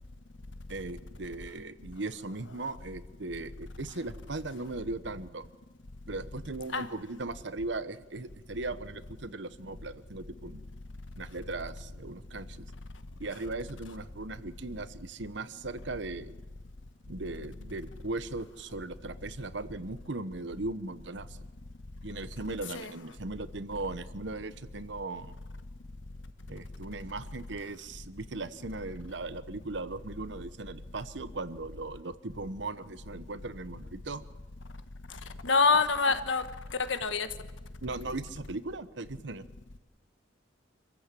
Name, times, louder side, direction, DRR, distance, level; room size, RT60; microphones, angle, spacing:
voice 1, 0.7-5.4 6.1-10.6 11.2-12.7 13.2-16.3 17.1-21.3 22.0-25.4 26.5-34.2 37.8-39.4, right 2 dB, 70° right, 1.0 m, -38 dB
voice 2, 35.4-36.4 36.9-37.3, left 4 dB, 85° left, 1.4 m, -25 dB
26.0 x 14.5 x 8.5 m
head